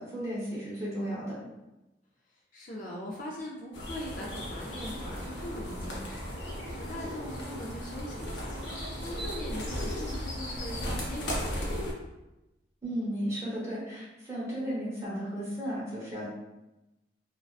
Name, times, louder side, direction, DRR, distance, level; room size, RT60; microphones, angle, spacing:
voice 1, 0.0-1.4 12.8-16.3, equal, 15° right, -8 dB, 0.9 m, -34 dB
voice 2, 2.3-11.9, equal, 45° left, -3 dB, 0.4 m, -41 dB
sound 1, 3.7-11.9, equal, 80° left, 0.7 m, -36 dB
2.5 x 2.2 x 2.3 m, 0.97 s
head